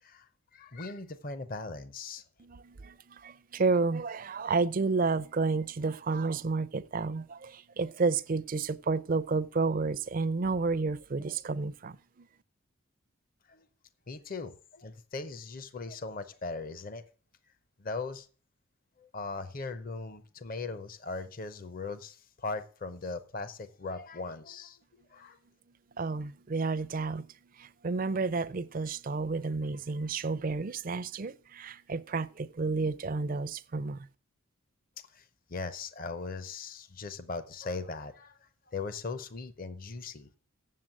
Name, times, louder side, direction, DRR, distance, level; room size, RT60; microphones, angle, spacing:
voice 1, 0.0-2.2 13.5-13.7 14.1-17.0 17.8-18.3 19.0-24.8 25.1-25.4 35.1-38.4 38.7-40.3, left 3 dB, 40° left, 0.7 m, -39 dB
voice 2, 2.4-12.0 26.0-27.3 27.6-34.0, right 4 dB, 40° right, 0.4 m, -31 dB
7.6 x 7.5 x 7.6 m
head